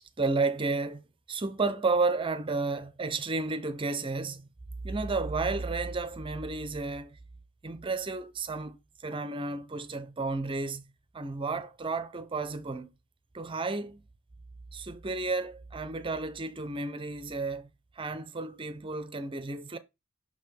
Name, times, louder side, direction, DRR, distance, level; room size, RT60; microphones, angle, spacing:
voice 1, 0.2-4.5 4.8-7.2 7.6-8.8 9.0-12.9 13.3-14.0 14.7-17.7 18.0-19.8, right 3 dB, 25° right, 0.6 m, -32 dB
5.9 x 4.7 x 3.7 m
head